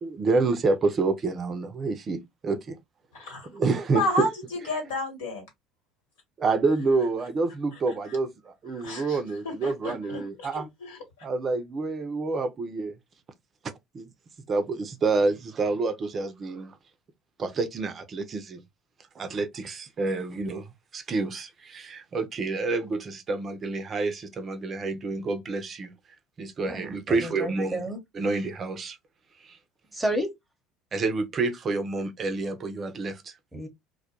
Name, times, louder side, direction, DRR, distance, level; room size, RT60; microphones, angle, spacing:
voice 1, 0.0-2.8 3.5-4.3 6.4-10.7 11.2-13.0 13.9-14.1 14.5-16.8 17.4-18.6 19.2-20.7 20.9-25.9 26.4-27.8 28.1-29.0 29.4-29.6 30.9-33.3, right 3 dB, 35° right, 0.4 m, -28 dB
voice 2, 3.1-3.5 3.9-5.4 7.7-8.2 8.7-11.3, left 1 dB, 70° left, 1.2 m, -32 dB
voice 3, 26.7-28.0 29.9-30.3 33.5-33.7, right 1 dB, 10° right, 0.8 m, -31 dB
2.2 x 2.0 x 2.8 m
figure-of-eight pair, 65°, 0 cm